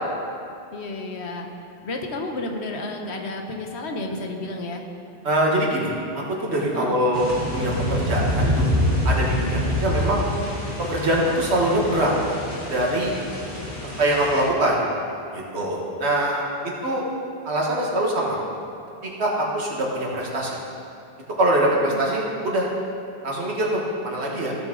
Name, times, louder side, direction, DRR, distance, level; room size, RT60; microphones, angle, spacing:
voice 1, 0.7-1.5 1.8-4.8 6.7-7.0 16.1-16.3 21.8-22.1, left 2 dB, 85° left, 3 dB, 1.3 m, -32 dB
voice 2, 5.2-5.9 6.4-7.2 7.5-8.7 9.0-10.3 10.8-12.2 12.7-13.1 14.0-14.8 15.3-16.4 16.8-17.0 17.5-18.4 19.2-20.6 21.4-22.7 23.2-24.5, right 1 dB, 85° right, -3 dB, 1.9 m, -23 dB
sound 1, 7.1-14.5, left 1 dB, 50° left, 2.5 m, -26 dB
16.0 x 6.2 x 3.8 m, 2.6 s
omnidirectional pair, 1.1 m